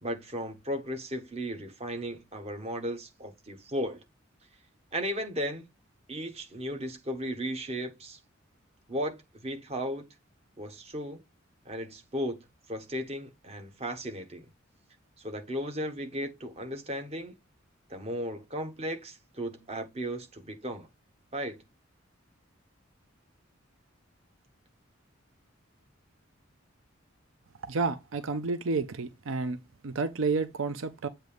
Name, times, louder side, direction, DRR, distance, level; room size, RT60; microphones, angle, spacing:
voice 1, 0.0-4.0 4.9-5.7 6.1-8.2 8.9-9.2 9.4-10.0 10.6-11.2 11.6-14.5 15.2-17.3 17.9-20.9 21.3-21.6, equal, 30° right, 1.2 m, -35 dB
voice 2, 27.7-29.6 29.8-31.1, right 4 dB, 80° right, 0.6 m, -30 dB
7.9 x 2.9 x 5.0 m
head